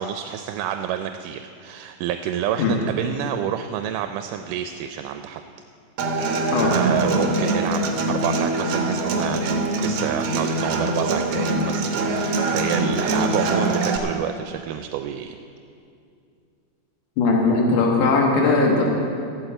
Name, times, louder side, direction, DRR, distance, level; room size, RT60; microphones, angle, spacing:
voice 1, 0.0-5.4 6.7-7.8 8.1-15.4, right 10 dB, 85° right, 7 dB, 2.1 m, -29 dB
Human voice / Acoustic guitar, 6.0-14.0, right 2 dB, 60° right, 2.0 m, -23 dB
voice 2, 17.2-18.8, left 3 dB, 80° left, -1 dB, 2.9 m, -19 dB
13.0 x 9.1 x 7.8 m, 2.5 s
omnidirectional pair, 3.7 m